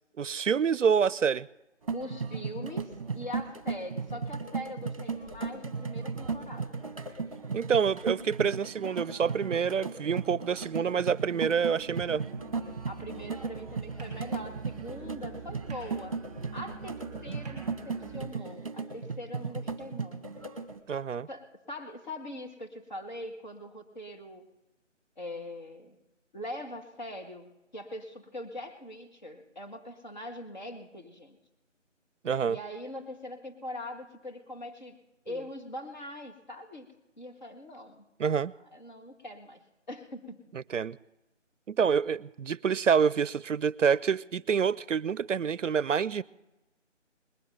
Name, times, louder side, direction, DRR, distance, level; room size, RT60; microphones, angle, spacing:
voice 1, 0.2-1.5 7.5-12.2 20.9-21.3 32.2-32.6 38.2-38.5 40.7-41.0 41.7-46.2, right 6 dB, 75° right, 0.6 m, -27 dB
sound 1, 1.8-20.8, right 4 dB, 30° right, 1.2 m, -36 dB
voice 2, 1.9-6.8 12.9-16.2 16.5-20.3 21.3-24.4 25.2-26.0 26.3-31.4 32.5-35.0 35.3-38.1 38.7-39.6 39.9-40.4, left 1 dB, 40° left, 1.9 m, -42 dB
Musical instrument, 11.9-18.2, right 3 dB, ahead, 2.7 m, -47 dB
20.5 x 8.5 x 6.7 m
figure-of-eight pair, 165°, 37 cm